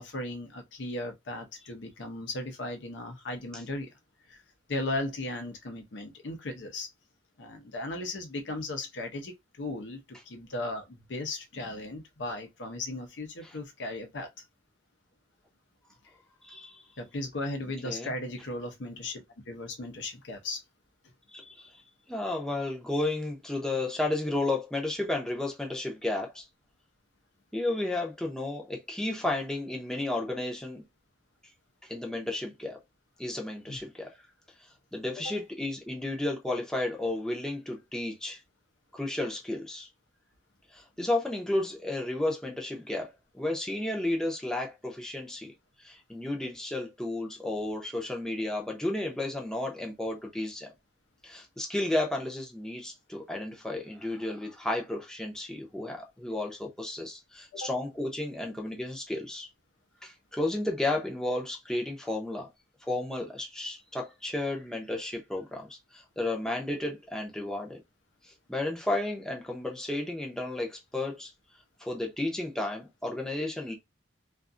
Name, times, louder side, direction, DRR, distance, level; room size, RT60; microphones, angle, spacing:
voice 1, 0.0-3.9 4.3-4.4 4.7-6.9 7.4-14.4 17.0-20.6 33.7-33.8 35.2-35.3 57.5-57.7, left 2 dB, 80° left, 0.7 m, -36 dB
voice 2, 16.4-16.8 17.8-18.1 21.3-21.7 22.1-26.4 27.5-30.8 31.8-32.8 33.2-34.2 34.9-38.4 38.9-39.9 40.7-45.5 45.8-50.7 51.2-59.5 60.0-62.5 62.8-67.8 68.5-71.3 71.8-73.7, left 2 dB, 5° left, 0.6 m, -32 dB
2.6 x 2.5 x 2.4 m
head